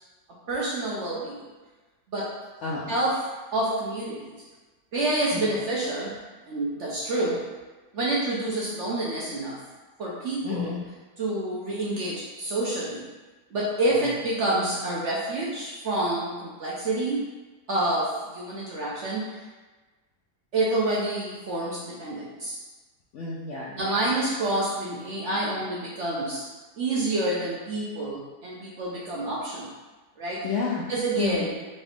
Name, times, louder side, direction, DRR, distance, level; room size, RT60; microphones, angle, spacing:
voice 1, 0.5-1.4 2.1-2.3 2.9-3.1 3.5-4.4 4.9-6.1 6.5-7.4 7.9-9.6 10.0-10.7 11.2-13.0 13.5-17.2 17.7-19.3 20.5-22.5 23.8-26.4 26.8-29.7 30.2-30.5 30.9-31.5, right 2 dB, 60° right, -5 dB, 0.8 m, -28 dB
voice 2, 2.6-3.0 5.3-5.6 10.4-10.9 13.9-14.1 23.1-23.9 30.4-30.9 31.2-31.5, left 5 dB, 70° left, -6 dB, 0.7 m, -31 dB
4.0 x 2.4 x 3.4 m, 1.3 s
omnidirectional pair, 1.7 m